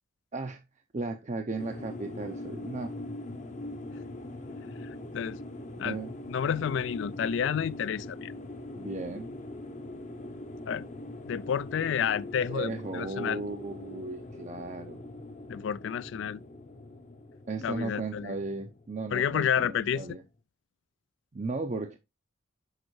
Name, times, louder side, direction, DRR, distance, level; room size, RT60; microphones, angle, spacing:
voice 1, 0.9-2.9 5.8-6.1 8.7-9.3 12.5-15.0 17.5-20.2 21.3-22.0, right 3 dB, 35° right, 0.5 m, -36 dB
sound 1, 1.6-20.0, left 2 dB, 35° left, 0.7 m, -42 dB
voice 2, 6.3-8.3 10.7-10.8 11.2-13.4 15.5-16.4 17.6-18.4 19.1-20.0, left 8 dB, 65° left, 0.3 m, -30 dB
6.4 x 5.4 x 3.1 m
head